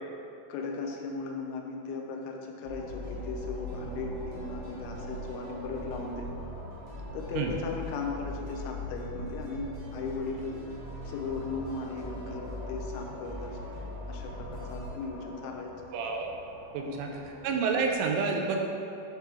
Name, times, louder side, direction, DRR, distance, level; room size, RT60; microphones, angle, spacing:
voice 1, 0.5-6.3 7.1-10.6 11.1-13.6 14.1-15.7 16.8-17.2, left 4 dB, 80° left, 0 dB, 3.0 m, -37 dB
sound 1, 2.6-14.9, equal, 70° right, 3.1 m, -41 dB
sound 2, 2.7-18.0, left 1 dB, 65° left, 2.5 m, -47 dB
voice 2, 15.9-16.3 16.7-17.1 17.4-18.6, right 5 dB, 85° right, 2 dB, 2.9 m, -28 dB
9.9 x 3.3 x 3.3 m, 2.6 s
omnidirectional pair, 5.6 m